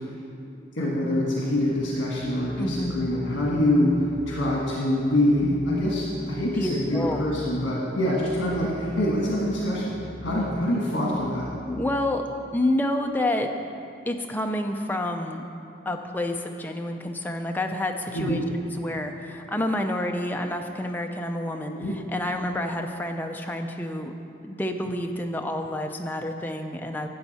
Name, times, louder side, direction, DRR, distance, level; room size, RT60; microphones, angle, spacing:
voice 1, 0.8-3.9 4.3-10.0 10.2-11.5 18.1-18.5 21.7-21.9, left 1 dB, 75° left, -4 dB, 1.5 m, -25 dB
sound 1, 1.5-12.3, left 1 dB, 40° left, 1.1 m, -43 dB
voice 2, 2.6-3.0 6.6-7.2 11.7-12.2 12.5-13.5 14.1-15.4 15.9-18.4 18.8-21.8 22.1-24.1 24.4-27.1, left 1 dB, 10° left, 3 dB, 0.5 m, -28 dB
12.5 x 8.1 x 4.2 m, 2.6 s
head